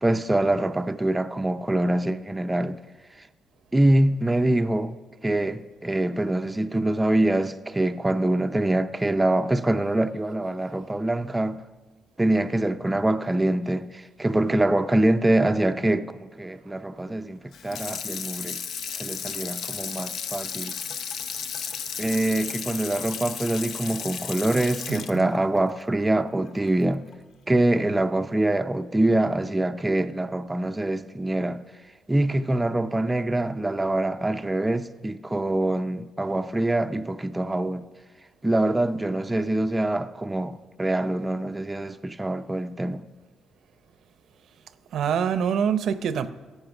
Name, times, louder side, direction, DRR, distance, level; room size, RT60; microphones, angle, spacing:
voice 1, 0.0-2.8 3.2-3.3 3.7-5.0 5.2-11.6 12.2-18.6 19.0-20.7 22.0-27.0 27.5-31.6 32.1-37.8 38.4-43.0, right 1 dB, 15° right, 0.5 m, -24 dB
Water tap faucet / Sink (filling or washing), 17.5-26.7 27.1-27.2, left 7 dB, 70° left, 0.7 m, -34 dB
voice 2, 24.9-25.3 44.9-46.3, right 7 dB, 70° right, 0.6 m, -25 dB
13.5 x 8.6 x 6.0 m
cardioid pair, 90°, 0 cm